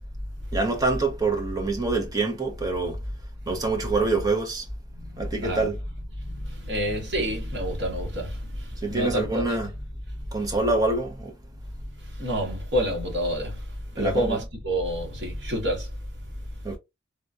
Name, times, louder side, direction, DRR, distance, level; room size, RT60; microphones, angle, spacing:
voice 1, 0.5-3.0 3.5-4.6 5.2-5.8 8.8-9.7 10.3-11.3 14.0-14.4 16.6-16.8, right 3 dB, 20° right, 0.8 m, -26 dB
voice 2, 5.0-5.7 6.2-9.6 10.4-10.5 12.1-13.7 13.9-15.9, equal, 60° right, 1.5 m, -28 dB
3.6 x 2.5 x 2.4 m
head